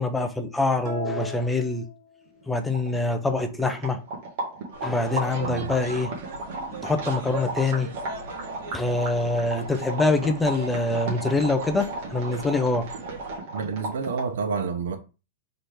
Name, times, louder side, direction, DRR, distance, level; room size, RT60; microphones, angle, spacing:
voice 1, 0.0-1.9 2.5-4.0 4.8-6.1 6.8-7.9 8.7-12.9, left 2 dB, 5° left, 0.5 m, -25 dB
sound 1, 0.9-2.7, left 4 dB, 20° right, 1.1 m, -37 dB
sound 2, 2.4-2.5 2.7-14.4, right 2 dB, 45° right, 1.7 m, -35 dB
sound 3, 4.7-13.4, right 3 dB, 70° right, 1.9 m, -39 dB
voice 2, 5.4-5.7 13.5-15.0, right 5 dB, 90° right, 1.0 m, -29 dB
4.0 x 3.8 x 3.4 m
supercardioid pair, 165°, 0 cm